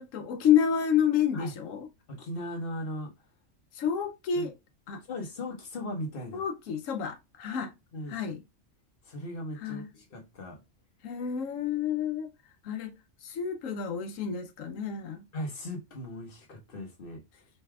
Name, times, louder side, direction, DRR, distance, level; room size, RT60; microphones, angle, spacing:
voice 1, 0.0-1.9 3.7-4.5 4.9-5.0 6.3-7.7 8.1-8.4 9.6-9.9 11.0-12.3 12.6-12.9 13.2-15.2, left 8 dB, 90° left, 1.0 m, -29 dB
voice 2, 2.1-3.3 4.3-4.5 5.1-6.5 7.9-8.2 9.0-10.6 15.3-17.5, left 1 dB, 50° left, 1.3 m, -38 dB
5.3 x 3.2 x 2.3 m
omnidirectional pair, 1.3 m